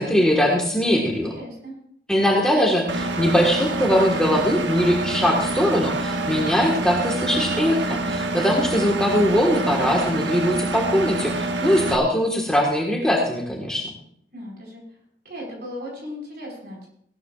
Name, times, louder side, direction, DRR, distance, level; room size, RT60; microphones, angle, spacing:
voice 1, 0.0-1.3 2.1-13.8, equal, 5° left, -1 dB, 1.5 m, -21 dB
voice 2, 1.3-1.7 14.3-14.8 15.2-16.9, equal, 60° right, -2 dB, 5.1 m, -36 dB
Engine, 2.9-12.0, right 2 dB, 90° right, 1.0 m, -26 dB
17.0 x 12.5 x 2.5 m, 0.68 s
head